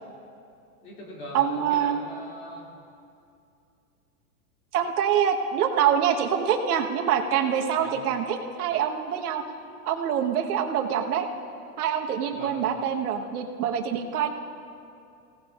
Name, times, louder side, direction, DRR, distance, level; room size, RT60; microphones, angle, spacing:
voice 1, 0.8-2.7 7.8-8.0 12.3-12.6, equal, 25° left, -3 dB, 2.6 m, -41 dB
voice 2, 1.3-2.0 4.7-9.4 9.8-11.3 11.8-14.3, right 8 dB, 80° right, 3 dB, 1.3 m, -25 dB
26.5 x 17.0 x 2.5 m, 2.5 s
supercardioid pair, 170°, 44 cm